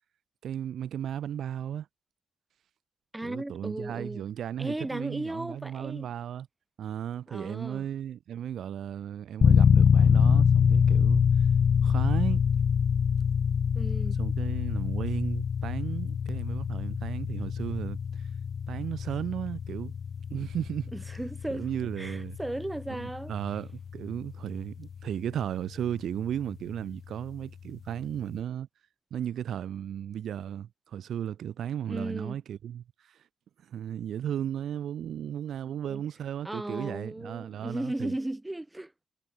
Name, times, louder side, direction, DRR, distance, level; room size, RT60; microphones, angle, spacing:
voice 1, 0.4-1.9 3.2-6.5 6.8-11.2 11.8-12.4 14.2-18.2 18.7-19.9 20.3-20.9 21.5-22.4 22.9-28.7 29.1-32.8 33.7-38.1, right 10 dB, 70° right, 4.6 m, -35 dB
voice 2, 3.1-4.2 4.6-6.1 7.3-7.9 13.7-14.2 20.9-21.7 22.0-23.4 31.9-32.4 35.8-36.0 36.4-38.9, right 1 dB, 15° right, 5.8 m, -36 dB
sound 1, 9.4-26.1, left 7 dB, 60° left, 0.5 m, -25 dB
supercardioid pair, 50°, 0 cm